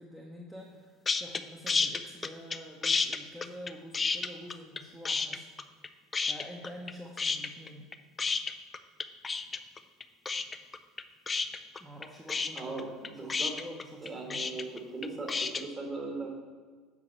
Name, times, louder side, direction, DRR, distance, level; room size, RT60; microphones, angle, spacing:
voice 1, 0.0-5.4 6.3-7.9 11.8-14.5, equal, 5° right, -2 dB, 0.9 m, -47 dB
sound 1, 1.0-1.4 1.7-2.6 2.8-4.8 5.0-5.9 6.1-6.9 7.2-15.6, left 4 dB, 20° left, 0.4 m, -30 dB
voice 2, 12.5-13.5 14.0-16.4, right 3 dB, 25° right, 0 dB, 1.7 m, -39 dB
7.4 x 5.8 x 4.3 m, 1.5 s
figure-of-eight pair, 65°, 0 cm